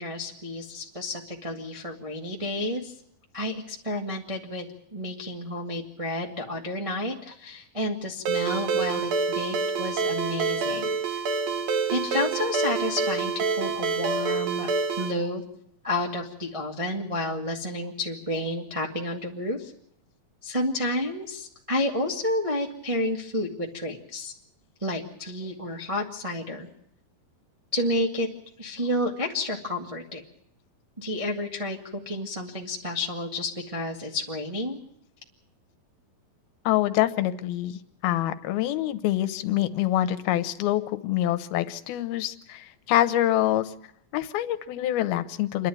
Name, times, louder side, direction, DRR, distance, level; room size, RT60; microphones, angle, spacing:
voice 1, 0.0-2.9 3.3-4.7 4.9-10.9 11.9-14.7 15.0-15.4 15.8-19.7 20.4-24.3 24.8-26.7 27.7-28.3 28.6-30.2 31.0-34.8, left 1 dB, 35° right, 0 dB, 0.5 m, -30 dB
Ringtone, 8.3-15.1, right 4 dB, 60° right, 2.2 m, -27 dB
voice 2, 36.7-43.7 44.1-45.7, left 13 dB, 90° left, 11 dB, 2.8 m, -26 dB
27.5 x 11.5 x 9.2 m, 0.71 s
omnidirectional pair, 4.2 m